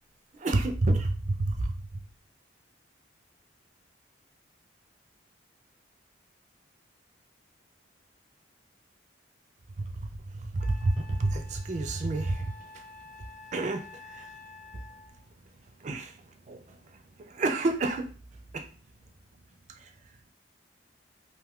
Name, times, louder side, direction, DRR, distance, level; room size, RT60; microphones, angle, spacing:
voice 1, 0.3-2.0 9.8-12.9 13.2-14.4 14.7-14.8 15.8-18.1 18.5-18.7 19.7-20.2, right 2 dB, 40° right, 0.4 m, -30 dB
Wind instrument woodwind instrument, 9.9-10.0 10.6-15.2, left 3 dB, 45° left, 0.7 m, -50 dB
2.6 x 2.3 x 3.5 m
head